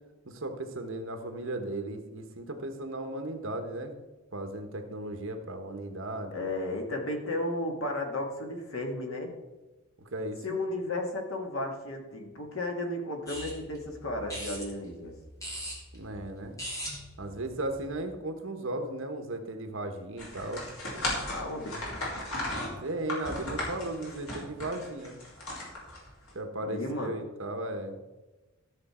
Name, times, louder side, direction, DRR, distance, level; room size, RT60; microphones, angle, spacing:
voice 1, 0.2-3.9 4.3-6.3 10.0-10.6 15.9-16.6 17.2-20.6 22.6-25.2 26.3-28.0, right 1 dB, 65° right, 6 dB, 1.3 m, -36 dB
voice 2, 6.3-9.3 10.4-15.1 21.3-21.8 26.6-27.1, left 1 dB, 70° left, 3 dB, 1.9 m, -34 dB
sound 1, 13.3-18.1, equal, 15° left, 2.6 m, -42 dB
sound 2, 20.2-26.3, left 1 dB, 85° left, 3.8 m, -36 dB
13.0 x 6.8 x 4.4 m, 1.1 s
head